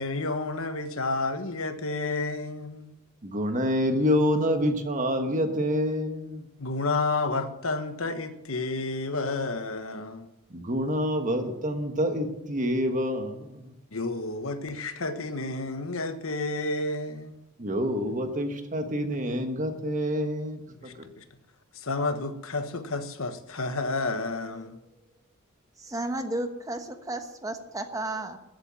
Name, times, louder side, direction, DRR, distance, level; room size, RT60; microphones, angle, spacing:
voice 1, 0.0-2.9 6.6-10.3 13.9-17.4 20.8-21.2 21.7-24.8, left 3 dB, 70° left, 1.2 m, -31 dB
voice 2, 3.2-6.4 10.5-13.7 17.6-20.9, equal, 35° right, 1.3 m, -27 dB
voice 3, 25.8-28.4, right 1 dB, 15° right, 1.1 m, -33 dB
14.5 x 7.9 x 7.5 m
head